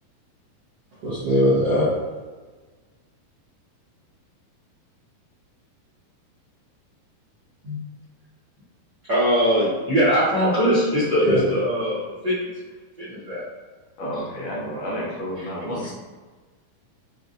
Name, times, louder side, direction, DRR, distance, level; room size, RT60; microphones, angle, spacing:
voice 1, 1.0-1.9 11.2-11.4, left 1 dB, 65° right, -12 dB, 1.6 m, -20 dB
voice 2, 9.1-12.5 13.0-13.4 15.4-15.5, equal, 80° right, -13 dB, 0.9 m, -21 dB
voice 3, 14.0-15.9, equal, 75° left, -5 dB, 2.0 m, -30 dB
5.9 x 2.5 x 2.6 m, 1.4 s
omnidirectional pair, 4.3 m